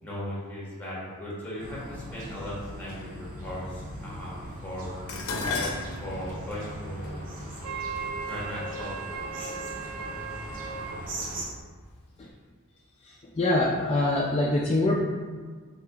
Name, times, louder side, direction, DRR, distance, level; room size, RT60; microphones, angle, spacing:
voice 1, 0.0-4.9 6.0-7.2 8.3-9.7, equal, 10° left, -7 dB, 1.2 m, -38 dB
sound 1, 1.6-11.5, right 1 dB, 40° right, 0.7 m, -39 dB
Dishes pots and pans, 5.1-9.4 10.3-10.7 11.1-12.0 12.2-12.3, left 3 dB, 85° left, 0.6 m, -36 dB
Wind instrument woodwind instrument, 7.6-11.0, right 6 dB, 75° right, 0.4 m, -37 dB
voice 2, 13.0-15.0, left 2 dB, 30° left, -3 dB, 0.3 m, -25 dB
4.9 x 3.7 x 2.3 m, 1.5 s
head